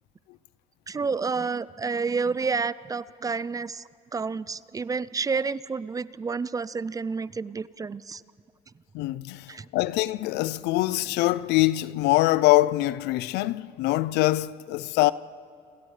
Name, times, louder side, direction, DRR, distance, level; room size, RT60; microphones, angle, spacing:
voice 1, 0.9-3.8 4.1-8.2 9.5-9.7, right 4 dB, 20° right, 0.4 m, -29 dB
voice 2, 8.9-15.1, left 17 dB, 85° left, 0.5 m, -24 dB
29.5 x 27.5 x 3.3 m
cardioid pair, 110°, 17 cm